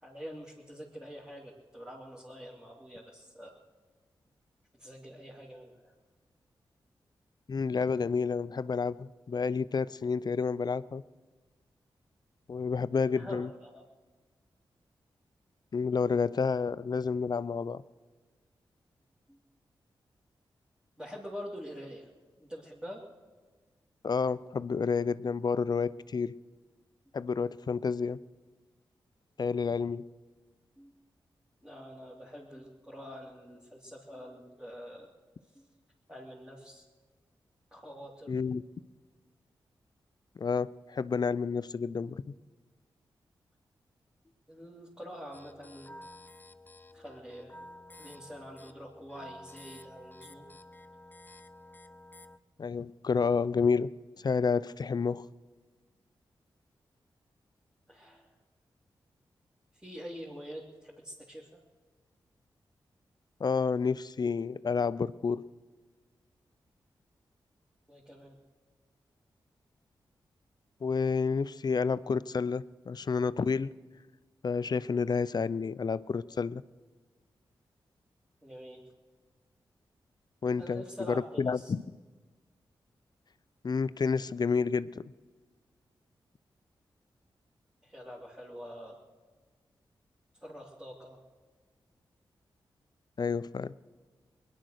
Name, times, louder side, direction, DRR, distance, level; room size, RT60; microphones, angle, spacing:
voice 1, 0.0-3.5 4.8-5.9 13.1-13.8 19.3-19.4 21.0-22.1 22.4-23.1 30.8-30.9 31.6-35.1 35.5-35.7 36.1-36.8 37.7-38.3 44.5-46.0 46.9-50.5 57.9-58.3 59.7-61.6 67.9-68.3 78.4-78.8 80.6-81.7 87.8-89.0 90.4-91.2, equal, 10° right, -5 dB, 2.8 m, -46 dB
voice 2, 7.5-11.0 12.5-13.5 15.7-17.8 24.0-26.3 27.1-28.2 29.4-30.0 38.3-38.6 40.4-42.2 52.6-53.9 54.2-55.2 63.4-65.4 70.8-73.7 74.4-76.6 80.4-80.8 81.1-81.8 83.6-85.0 93.2-93.7, left 5 dB, 50° left, 17 dB, 0.5 m, -30 dB
sound 1, 45.3-52.4, left 1 dB, 20° left, 0.8 m, -51 dB
20.5 x 10.5 x 6.5 m, 1.4 s
cardioid pair, 45°, 9 cm